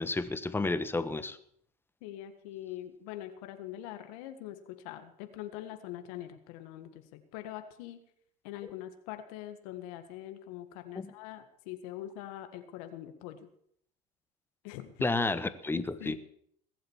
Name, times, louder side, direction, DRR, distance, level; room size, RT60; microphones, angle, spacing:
voice 1, 0.0-1.4 10.9-11.1 15.0-16.2, left 3 dB, 10° left, 12 dB, 1.2 m, -31 dB
voice 2, 2.0-8.0 8.4-13.5 14.6-14.9 15.8-16.2, left 12 dB, 85° left, 9 dB, 1.7 m, -43 dB
20.0 x 7.8 x 7.3 m, 0.67 s
supercardioid pair, 100°, 18 cm